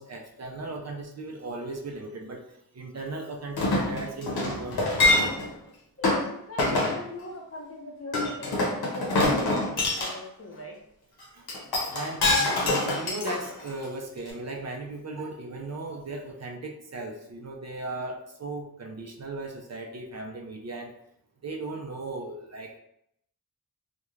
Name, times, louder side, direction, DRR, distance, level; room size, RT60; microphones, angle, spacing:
voice 1, 0.0-5.1 11.3-20.9 21.4-22.8, right 2 dB, 45° right, 2 dB, 0.4 m, -37 dB
Chink clink, 3.6-5.5 6.0-6.2 6.6-7.0 8.1-10.1 11.5-13.8 14.3-14.4, left 2 dB, 85° left, 0.7 m, -25 dB
voice 2, 6.0-10.8, left 1 dB, 40° left, -1 dB, 0.7 m, -41 dB
2.3 x 2.1 x 3.1 m, 0.75 s
wide cardioid pair, 55°, 37 cm